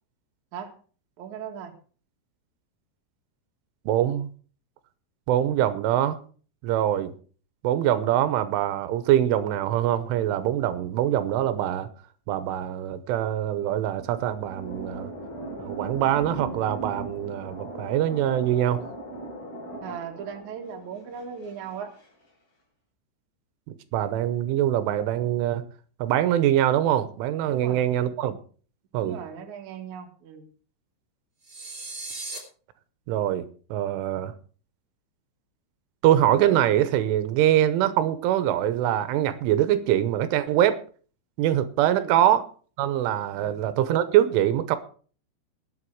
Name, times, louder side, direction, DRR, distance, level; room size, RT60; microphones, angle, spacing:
voice 1, 1.2-1.7 19.8-21.9 27.5-27.8 29.0-30.5 41.9-42.2 43.3-43.6, right 7 dB, 55° right, 4 dB, 2.3 m, -38 dB
voice 2, 3.9-4.3 5.3-6.2 6.6-7.1 7.6-11.9 12.3-15.1 15.6-18.8 23.9-25.7 26.0-28.4 28.9-29.2 32.1-32.3 33.1-34.3 36.0-40.8 41.4-42.4 42.8-44.8, right 12 dB, 85° right, 13 dB, 3.3 m, -23 dB
sound 1, 14.0-22.1, right 2 dB, 50° left, 7.1 m, -39 dB
sound 2, 31.4-32.4, right 2 dB, 25° right, 4.0 m, -36 dB
19.5 x 7.7 x 4.7 m, 0.41 s
omnidirectional pair, 5.6 m